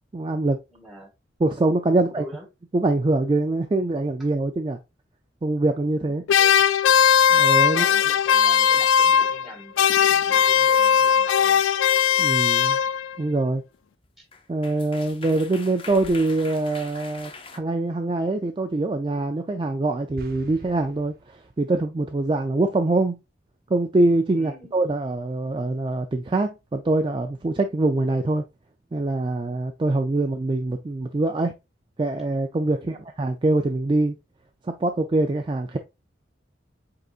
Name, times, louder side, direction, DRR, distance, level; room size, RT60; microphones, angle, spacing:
voice 1, 0.1-0.6 1.4-2.3 2.7-4.8 5.4-6.2 7.3-7.9 12.2-12.8 13.2-13.6 14.5-21.1 21.6-23.2 23.7-28.4 28.9-31.5 32.0-34.1 34.7-35.8, right 2 dB, 25° right, 0.3 m, -24 dB
voice 2, 0.7-1.1 2.0-2.5 6.1-6.7 7.7-11.6 14.2-14.3 24.3-24.7 32.8-33.0, equal, ahead, 1.7 m, -43 dB
sound 1, 6.3-9.5 9.8-13.2, left 8 dB, 90° left, 0.3 m, -18 dB
sound 2, 14.0-14.1 14.3-17.6, left 4 dB, 30° left, 0.6 m, -42 dB
sound 3, 20.1-21.8, right 1 dB, 50° right, 0.7 m, -45 dB
5.1 x 3.9 x 2.4 m
head